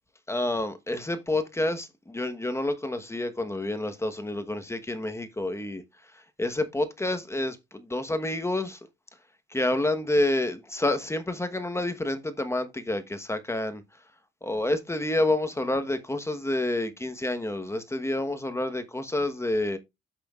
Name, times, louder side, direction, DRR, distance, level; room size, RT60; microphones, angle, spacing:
voice 1, 0.3-5.8 6.1-8.8 9.5-13.8 14.4-19.8, left 1 dB, 15° left, 1.1 m, -28 dB
8.7 x 7.6 x 2.4 m
cardioid pair, 90°, 20 cm